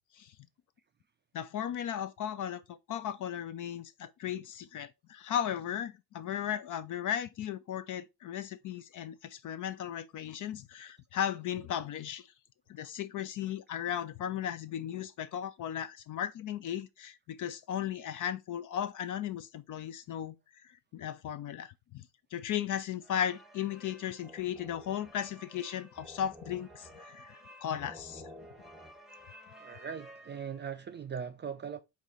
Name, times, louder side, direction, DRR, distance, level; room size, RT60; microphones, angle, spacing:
voice 1, 1.3-12.3 12.7-20.4 20.6-28.2, left 10 dB, 40° left, 0.5 m, -36 dB
sound 1, 23.0-30.9, equal, ahead, 0.9 m, -52 dB
voice 2, 29.6-31.8, right 7 dB, 25° right, 0.4 m, -40 dB
4.7 x 2.7 x 4.0 m
hypercardioid pair, 55°, 49 cm